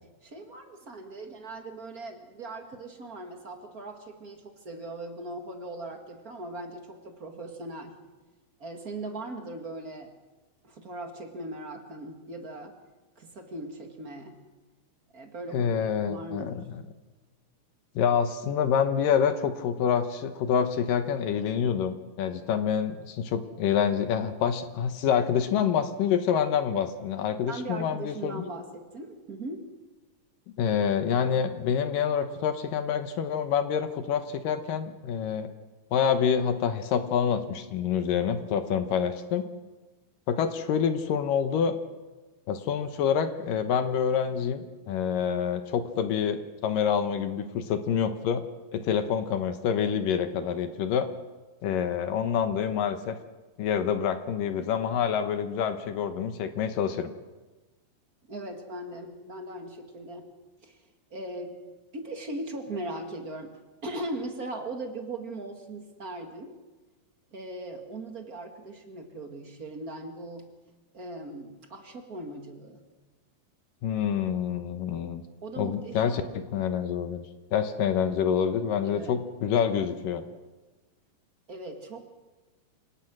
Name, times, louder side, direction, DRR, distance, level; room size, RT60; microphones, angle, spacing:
voice 1, 0.2-8.0 8.6-10.1 10.6-12.7 13.2-14.4 15.1-15.7 16.1-16.7 27.5-29.7 58.3-60.3 60.6-66.6 67.3-70.5 70.9-72.8 75.4-76.2 78.8-79.2 81.5-82.1, right 2 dB, 30° right, 4 dB, 1.8 m, -39 dB
voice 2, 15.5-16.6 18.0-28.4 30.6-35.5 35.9-39.5 40.3-41.7 42.5-48.4 48.7-51.1 51.6-53.2 53.6-57.1 73.8-75.2 75.6-77.2 77.5-80.2, left 7 dB, 70° left, 9 dB, 2.6 m, -27 dB
27.5 x 18.0 x 6.2 m, 1.2 s
omnidirectional pair, 4.3 m